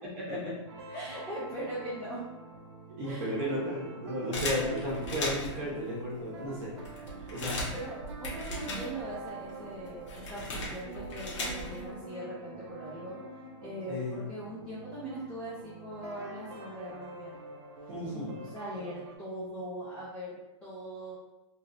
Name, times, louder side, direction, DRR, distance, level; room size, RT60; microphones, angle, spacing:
sound 1, 0.7-19.2, right 3 dB, 55° right, 0.5 m, -46 dB
voice 1, 0.9-2.2 3.1-3.4 7.7-13.2 13.6-17.4 18.1-20.3 20.6-21.1, right 1 dB, 5° left, -11 dB, 0.6 m, -40 dB
voice 2, 3.0-7.5 13.9-14.1 17.9-18.3, equal, 30° right, -5 dB, 0.9 m, -34 dB
sound 2, 4.3-5.7 6.3-6.4 6.6-9.3 9.5-11.9, left 1 dB, 65° left, 1.0 m, -37 dB
3.1 x 2.9 x 2.6 m, 0.96 s
supercardioid pair, 175°, 16 cm